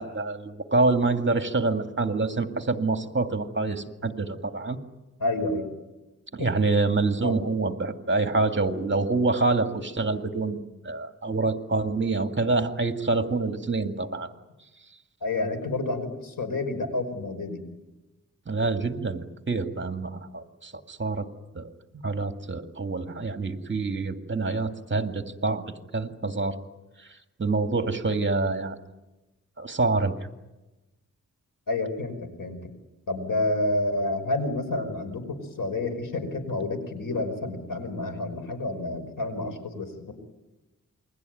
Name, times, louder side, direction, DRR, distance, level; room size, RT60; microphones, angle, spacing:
voice 1, 0.0-4.8 6.3-14.3 18.5-21.3 21.5-21.7 22.0-25.6 25.9-26.6 27.4-28.8 29.6-30.2, right 3 dB, 35° right, 6 dB, 2.1 m, -26 dB
voice 2, 5.2-5.7 6.4-6.5 7.2-7.4 15.2-17.6 31.7-32.6 33.1-39.9, left 2 dB, 85° left, 8 dB, 5.2 m, -29 dB
28.5 x 22.0 x 9.3 m, 1.1 s
wide cardioid pair, 95°, 32 cm